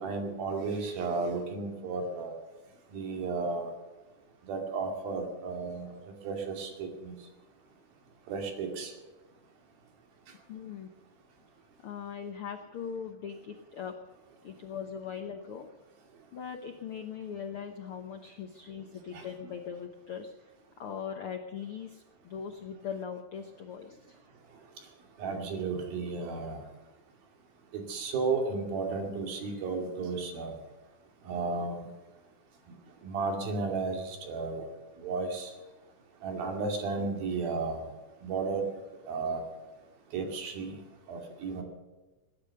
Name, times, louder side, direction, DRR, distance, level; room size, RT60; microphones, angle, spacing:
voice 1, 0.0-2.3 2.9-3.7 4.5-5.9 6.2-7.1 8.3-8.9 25.2-26.6 27.7-30.5 31.3-31.8 33.0-34.6 35.0-35.5 36.2-37.8 38.2-38.7 39.1-39.4 40.1-40.7 41.1-41.6, right 4 dB, 85° right, 4 dB, 4.3 m, -33 dB
voice 2, 10.5-10.9 11.8-14.0 14.4-15.7 16.3-20.3 20.8-24.2, left 7 dB, 85° left, 5 dB, 1.2 m, -40 dB
20.0 x 10.5 x 6.6 m, 1.2 s
omnidirectional pair, 4.1 m